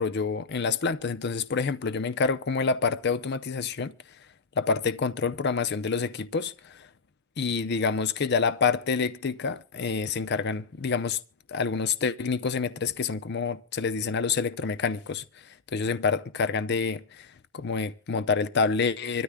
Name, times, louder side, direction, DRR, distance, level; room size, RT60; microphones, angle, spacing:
voice 1, 0.0-3.9 4.6-6.9 7.4-11.2 11.5-15.2 15.7-19.2, left 5 dB, 55° left, 0.6 m, -27 dB
25.0 x 13.5 x 2.2 m
head